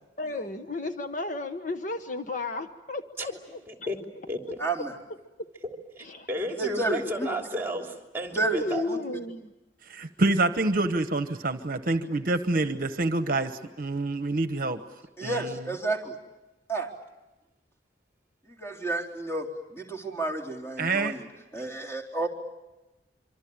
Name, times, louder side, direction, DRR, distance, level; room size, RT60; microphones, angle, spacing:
voice 1, 0.2-3.9 6.0-6.3 7.2-7.4 8.6-9.5, left 2 dB, 45° left, 7 dB, 1.1 m, -34 dB
voice 2, 3.2-4.0 4.3-4.6 5.6-8.8, equal, 10° right, 3 dB, 3.2 m, -33 dB
voice 3, 4.6-4.9 6.6-7.3 8.3-9.0 15.2-16.2 16.7-16.9 18.5-21.3 21.5-22.3, right 2 dB, 15° left, 0 dB, 3.8 m, -31 dB
voice 4, 9.9-14.8 15.2-15.7 20.8-21.1, right 2 dB, 50° right, 10 dB, 1.1 m, -27 dB
26.0 x 25.0 x 8.9 m, 1.0 s
head